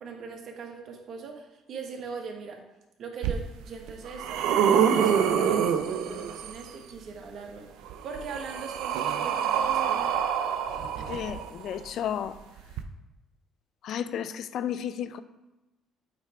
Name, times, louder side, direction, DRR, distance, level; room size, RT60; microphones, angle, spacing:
voice 1, 0.0-2.6 3.0-7.7 8.0-10.2, right 5 dB, 60° right, 1.3 m, -41 dB
sound 1, 3.2-3.3 3.9-6.6 7.8-11.7 12.7-12.8, right 8 dB, 85° right, 0.5 m, -26 dB
voice 2, 11.1-12.4 13.8-15.2, left 9 dB, 65° left, 0.4 m, -32 dB
8.1 x 3.3 x 4.8 m
cardioid pair, 90°, 0 cm